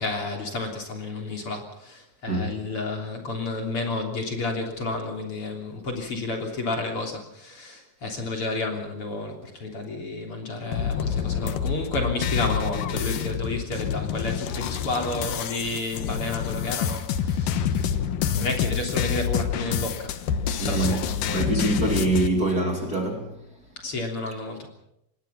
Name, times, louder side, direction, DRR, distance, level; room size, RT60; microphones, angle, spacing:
voice 1, 0.0-18.0 18.4-20.1 20.7-21.5 23.8-24.7, left 2 dB, 40° left, 4.0 m, -31 dB
voice 2, 2.3-2.6 20.6-21.1 21.3-23.4, right 2 dB, 30° right, 3.1 m, -24 dB
sound 1, 10.7-22.3, left 8 dB, 80° left, 2.9 m, -27 dB
26.0 x 20.0 x 5.8 m
omnidirectional pair, 3.8 m